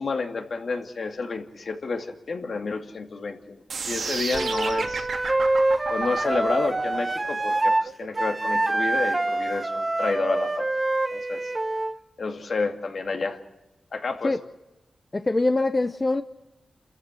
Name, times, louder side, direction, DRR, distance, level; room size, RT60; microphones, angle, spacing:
voice 1, 0.0-5.1 5.9-10.7 11.1-11.5 12.2-13.4 13.9-14.3, left 4 dB, 60° left, 5 dB, 2.4 m, -30 dB
sound 1, 3.7-9.7, right 5 dB, 80° right, 2.9 m, -33 dB
Wind instrument woodwind instrument, 4.3-7.9 8.1-12.0, right 2 dB, 25° right, 1.0 m, -25 dB
voice 2, 15.1-16.2, left 2 dB, 25° left, 10 dB, 0.7 m, -23 dB
28.5 x 14.5 x 7.7 m, 1.0 s
wide cardioid pair, 95°, 0 cm